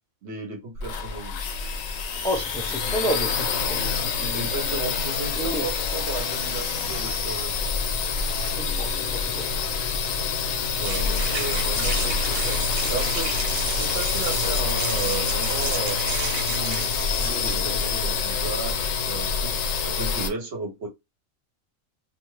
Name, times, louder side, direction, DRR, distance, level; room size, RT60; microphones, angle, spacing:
voice 1, 0.2-1.4 4.3-7.5 10.8-13.3 13.7-16.0 16.5-16.8 17.2-19.5 19.8-20.9, right 4 dB, 60° right, 1.0 m, -34 dB
sound 1, 0.8-20.3, left 5 dB, 75° left, 1.0 m, -26 dB
voice 2, 2.2-4.7 5.4-5.7 8.4-8.9 9.2-9.5, right 1 dB, 10° left, 0.3 m, -31 dB
sound 2, 9.2-17.8, right 4 dB, 90° right, 1.2 m, -33 dB
2.4 x 2.3 x 3.1 m
omnidirectional pair, 1.4 m